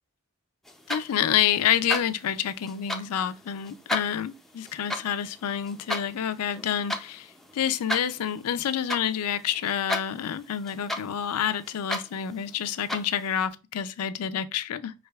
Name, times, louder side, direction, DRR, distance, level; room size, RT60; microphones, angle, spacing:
sound 1, 0.7-13.5, left 1 dB, ahead, 0.4 m, -36 dB
voice 1, 0.9-14.9, left 9 dB, 80° left, 0.4 m, -28 dB
4.9 x 3.3 x 2.3 m
head